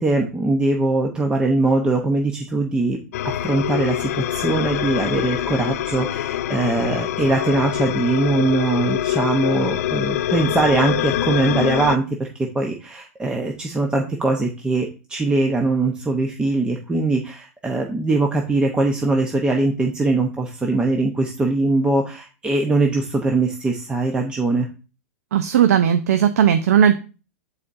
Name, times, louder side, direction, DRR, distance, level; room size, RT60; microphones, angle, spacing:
voice 1, 0.0-3.0 3.2-12.3 12.5-24.7, right 2 dB, 10° right, 1 dB, 0.8 m, -21 dB
sound 1, 3.1-12.0, left 12 dB, 75° left, 0.4 m, -24 dB
voice 2, 25.3-27.0, right 9 dB, 80° right, 8 dB, 0.6 m, -16 dB
12.0 x 4.2 x 2.6 m, 0.33 s
supercardioid pair, 140°, 8 cm